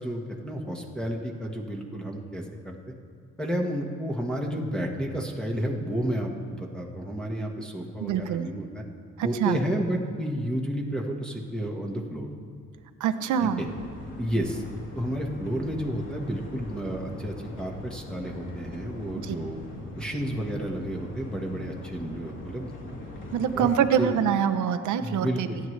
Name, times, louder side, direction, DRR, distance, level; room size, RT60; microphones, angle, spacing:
voice 1, 0.0-2.8 3.4-8.8 9.2-12.3 13.4-13.7 14.2-14.6 14.9-19.6 20.0-23.0 23.6-23.7 24.0-24.1 25.0-25.6, equal, 5° left, -2 dB, 1.5 m, -31 dB
voice 2, 8.0-8.5 9.2-9.6 13.0-13.6 19.2-19.4 23.3-25.5, right 8 dB, 75° right, 10 dB, 0.8 m, -25 dB
sound 1, 13.6-23.7, left 1 dB, 40° left, 3.3 m, -41 dB
27.0 x 9.6 x 3.3 m, 2.2 s
cardioid pair, 90°, 30 cm